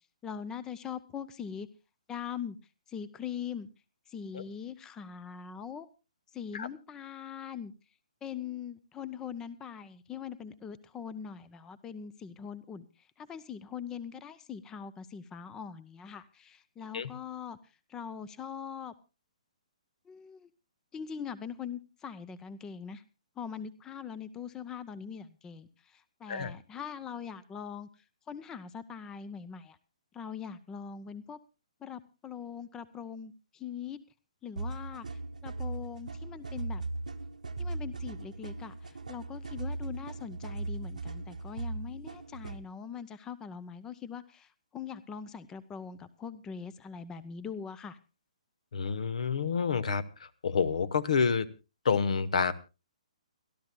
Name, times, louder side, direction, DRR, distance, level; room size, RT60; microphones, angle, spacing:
voice 1, 0.2-1.7 2.1-2.6 2.9-3.7 4.1-5.9 6.3-7.7 8.2-18.9 20.1-20.5 20.9-23.0 23.4-29.8 30.1-31.4 31.8-34.0 34.4-36.8 37.6-48.0, left 7 dB, 15° left, 18 dB, 0.6 m, -42 dB
sound 1, 34.6-42.6, right 2 dB, 90° right, 1.1 m, -38 dB
voice 2, 48.7-51.5 51.8-52.5, left 6 dB, 65° left, 17 dB, 1.1 m, -28 dB
30.0 x 12.5 x 2.2 m, 0.29 s
hypercardioid pair, 135°, 4 cm